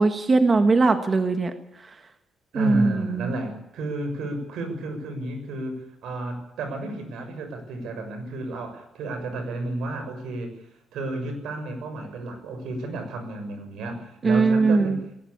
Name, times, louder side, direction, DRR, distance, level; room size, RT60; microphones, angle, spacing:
voice 1, 0.0-1.5 2.5-3.3 14.2-15.0, right 3 dB, 25° right, 8 dB, 1.5 m, -20 dB
voice 2, 2.5-15.2, right 2 dB, 85° right, 6 dB, 7.0 m, -32 dB
20.0 x 19.0 x 8.7 m, 0.82 s
cardioid pair, 155°, 0 cm